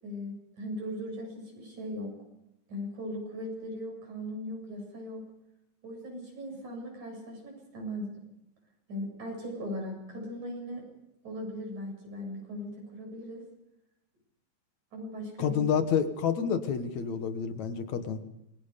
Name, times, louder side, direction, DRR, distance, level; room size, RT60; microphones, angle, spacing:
voice 1, 0.0-2.1 2.7-5.3 5.8-8.1 8.9-10.9 11.2-13.4 14.9-15.6, equal, 75° right, 1 dB, 9.0 m, -38 dB
voice 2, 15.4-18.2, left 7 dB, 70° left, 8 dB, 2.6 m, -29 dB
27.5 x 23.5 x 5.2 m, 0.85 s
omnidirectional pair, 3.4 m